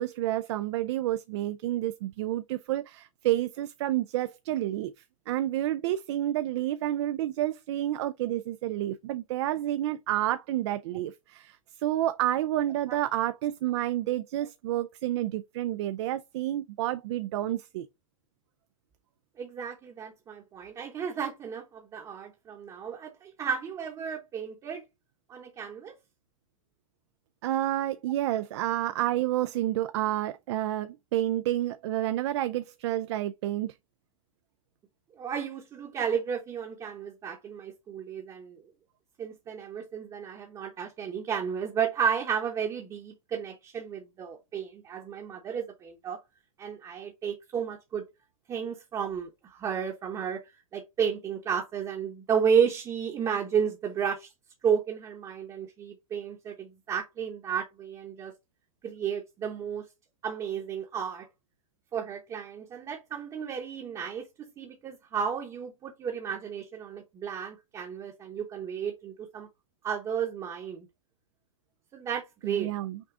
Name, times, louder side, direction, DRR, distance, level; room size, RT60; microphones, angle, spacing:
voice 1, 0.0-4.9 5.3-17.9 27.4-33.7 72.4-73.0, right 13 dB, 55° right, 0.4 m, -29 dB
voice 2, 19.4-24.8 25.3-25.9 35.2-38.6 39.2-46.2 46.6-48.0 48.5-50.4 50.7-54.3 54.6-58.3 58.8-59.8 60.2-61.3 61.9-69.5 69.8-70.9 71.9-72.7, right 7 dB, 20° right, 0.9 m, -32 dB
6.0 x 2.4 x 3.7 m
supercardioid pair, 145°, 17 cm